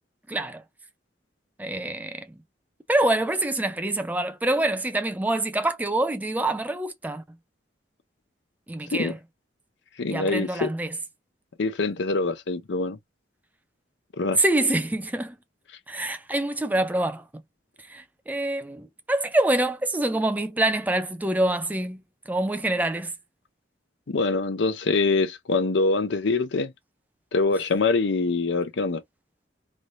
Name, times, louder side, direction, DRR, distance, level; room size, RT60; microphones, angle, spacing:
voice 1, 0.3-0.6 1.6-2.4 2.9-7.2 8.7-9.2 10.1-11.0 14.3-15.4 15.9-17.2 17.8-23.1, right 1 dB, 10° right, 0.4 m, -26 dB
voice 2, 10.0-10.7 11.6-13.0 14.2-14.4 24.1-26.7 27.3-29.0, left 3 dB, 70° left, 0.6 m, -24 dB
3.1 x 2.6 x 2.6 m
head